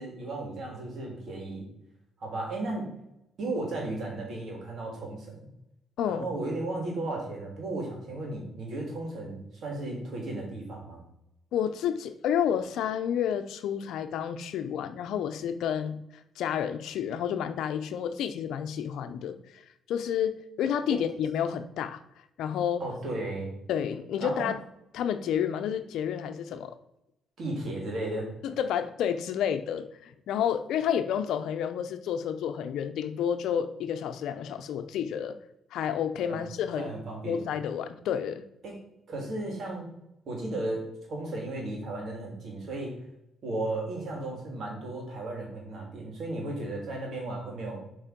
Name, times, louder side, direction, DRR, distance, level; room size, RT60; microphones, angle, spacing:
voice 1, 0.0-1.7 2.2-2.9 3.4-5.4 6.0-11.0 20.9-21.0 22.8-23.5 24.2-24.5 27.4-28.3 36.3-36.5 36.8-37.5 38.6-38.8 39.1-39.8 40.3-43.0 43.4-47.9, right 2 dB, 60° right, -1 dB, 3.3 m, -35 dB
voice 2, 6.0-6.3 11.5-16.0 16.4-19.6 19.9-22.0 22.4-22.8 23.7-24.6 24.9-26.7 28.4-35.4 35.7-36.9 37.3-38.4, left 8 dB, 80° left, 9 dB, 0.7 m, -30 dB
7.4 x 4.8 x 5.2 m, 0.85 s
cardioid pair, 90°, 0 cm